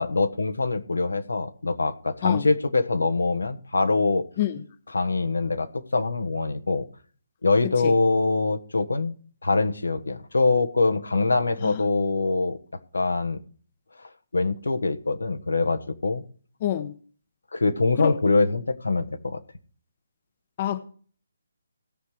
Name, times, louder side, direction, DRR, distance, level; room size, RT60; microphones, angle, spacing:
voice 1, 0.0-4.3 4.9-6.8 7.4-9.1 9.4-12.6 12.9-13.4 14.3-16.2 17.5-19.4, left 3 dB, 80° left, 1.3 m, -24 dB
voice 2, 16.6-16.9 18.0-18.1 20.6-20.8, left 12 dB, 35° left, 0.9 m, -26 dB
17.0 x 5.8 x 4.9 m
figure-of-eight pair, 150°, 0 cm